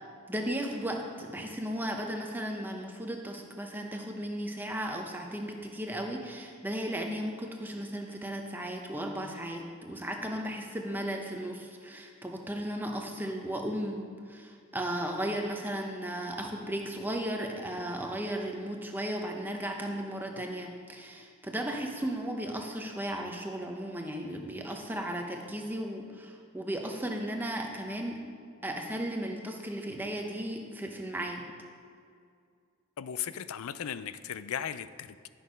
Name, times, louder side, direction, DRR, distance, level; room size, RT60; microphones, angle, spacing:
voice 1, 0.3-28.2 28.6-31.5, right 1 dB, 10° right, 2 dB, 0.8 m, -35 dB
voice 2, 33.0-35.3, left 9 dB, 75° left, 14 dB, 0.4 m, -37 dB
11.0 x 6.3 x 5.2 m, 2.2 s
head